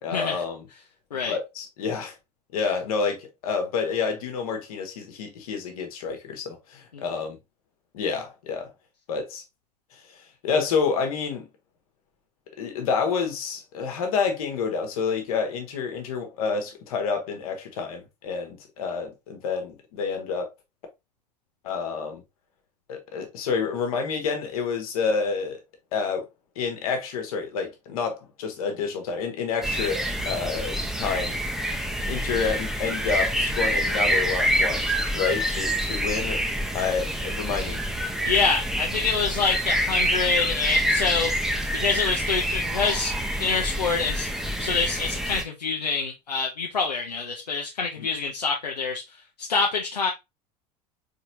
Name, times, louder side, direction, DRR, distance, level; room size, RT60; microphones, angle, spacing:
voice 1, 0.0-0.7 1.2-2.1 2.5-7.4 7.9-8.7 9.1-9.4 9.9-11.5 12.6-20.5 21.6-22.2 22.9-25.6 25.9-26.3 26.5-31.4 32.1-36.4 36.7-37.8 48.0-48.1, left 5 dB, 60° left, 1.2 m, -29 dB
sound 1, 29.6-45.4, equal, ahead, 0.7 m, -27 dB
voice 2, 38.2-41.3 41.7-49.0 49.4-50.1, left 4 dB, 80° left, 0.6 m, -26 dB
4.3 x 3.5 x 2.6 m
figure-of-eight pair, 75°, 21 cm